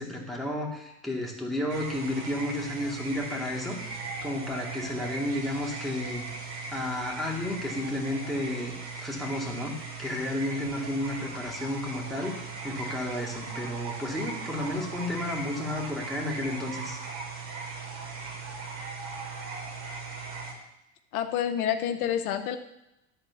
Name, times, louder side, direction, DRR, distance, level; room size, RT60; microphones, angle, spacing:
voice 1, 0.0-4.0 4.2-6.2 6.7-8.7 9.0-17.0, left 1 dB, ahead, -3 dB, 2.5 m, -32 dB
sound 1, 1.7-20.5, right 4 dB, 60° right, 2.9 m, -38 dB
voice 2, 21.1-22.6, left 9 dB, 80° left, 8 dB, 0.9 m, -28 dB
11.5 x 4.2 x 7.0 m, 0.91 s
hypercardioid pair, 105°, 43 cm